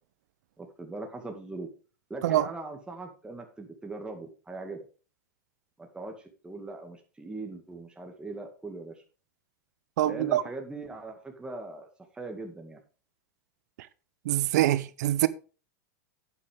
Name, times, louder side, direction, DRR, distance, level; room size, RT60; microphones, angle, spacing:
voice 1, 0.6-1.7 2.1-4.8 5.8-9.0 10.1-11.9 12.1-12.8, right 2 dB, 10° right, 2.1 m, -40 dB
voice 2, 10.0-10.4 14.2-15.3, right 14 dB, 70° right, 0.8 m, -24 dB
11.0 x 8.8 x 3.6 m
hypercardioid pair, 110°, 10 cm